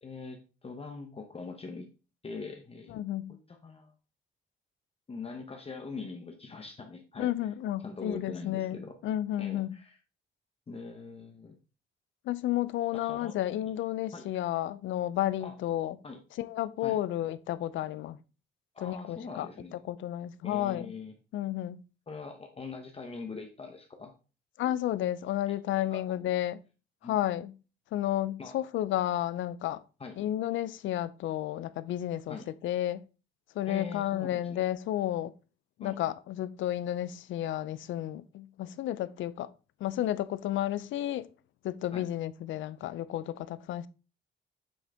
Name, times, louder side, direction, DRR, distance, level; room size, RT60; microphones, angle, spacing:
voice 1, 0.0-1.9 2.2-3.0 3.3-3.9 5.1-7.5 7.8-9.0 9.4-10.0 10.7-11.6 12.9-13.4 13.7-13.8 14.1-14.3 15.4-15.5 16.0-16.2 16.8-17.0 18.7-19.8 20.4-21.1 22.1-24.1 25.5-26.3 27.0-27.2 28.4-28.7 30.0-30.2 32.3-32.5 33.7-34.6 35.8-36.0 41.9-42.1, left 4 dB, 30° left, 0.9 m, -43 dB
voice 2, 2.9-3.4 7.2-9.7 12.3-16.0 16.4-18.2 18.8-19.5 19.9-20.9 21.3-21.8 24.6-26.6 27.0-27.5 27.9-29.8 30.2-32.4 32.6-33.0 33.6-35.3 35.8-39.5 39.8-41.3 41.6-43.9, left 13 dB, 75° left, 0.5 m, -32 dB
7.8 x 3.7 x 3.4 m
cardioid pair, 90°, 20 cm